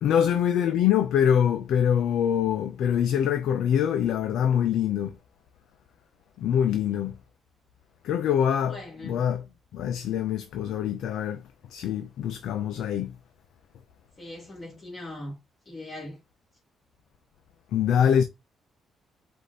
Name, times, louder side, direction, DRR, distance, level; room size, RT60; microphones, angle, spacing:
voice 1, 0.0-5.1 6.4-7.1 8.0-8.8 9.0-9.4 9.7-11.4 11.7-13.1 17.7-18.2, left 9 dB, 80° left, 0.5 m, -24 dB
voice 2, 6.7-7.0 8.7-9.3 14.2-15.3 15.7-16.2, left 1 dB, 30° left, 2.2 m, -40 dB
4.7 x 2.6 x 4.0 m
cardioid pair, 90°, 0 cm